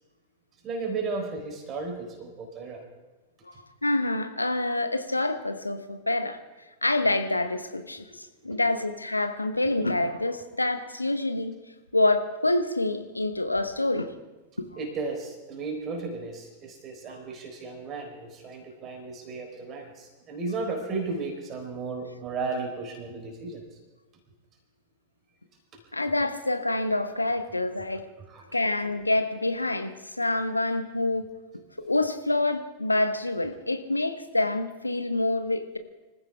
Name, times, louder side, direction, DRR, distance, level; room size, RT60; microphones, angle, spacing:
voice 1, 0.6-2.8 3.5-3.6 8.5-8.7 14.8-23.6 25.7-25.8 28.3-28.6, right 4 dB, 30° right, 2 dB, 4.1 m, -34 dB
voice 2, 3.8-6.4 6.8-11.6 11.9-14.1 14.6-14.7 25.9-28.0 28.5-31.3 31.8-35.8, left 2 dB, 85° left, 8 dB, 1.2 m, -27 dB
26.0 x 15.0 x 3.6 m, 1.2 s
figure-of-eight pair, 90°, 0 cm